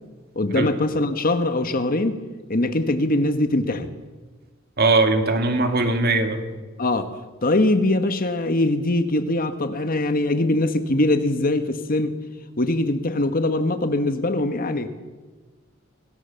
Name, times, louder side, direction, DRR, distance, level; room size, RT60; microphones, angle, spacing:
voice 1, 0.3-2.2 2.5-3.9 6.8-7.1 7.4-12.1 12.6-14.9, left 2 dB, 45° left, 9 dB, 1.5 m, -22 dB
voice 2, 4.8-6.4, right 3 dB, 50° right, 6 dB, 2.4 m, -20 dB
26.0 x 19.0 x 7.1 m, 1.3 s
head